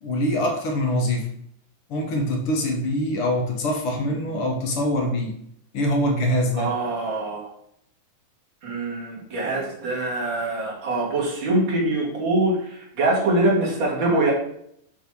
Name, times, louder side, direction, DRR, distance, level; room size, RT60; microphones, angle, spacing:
voice 1, 0.0-1.3 1.9-5.3 5.7-6.7, left 1 dB, 60° left, 1 dB, 1.7 m, -24 dB
voice 2, 6.5-7.4 8.6-14.3, right 2 dB, 40° right, -4 dB, 2.6 m, -24 dB
6.7 x 3.5 x 6.2 m, 0.71 s
omnidirectional pair, 3.5 m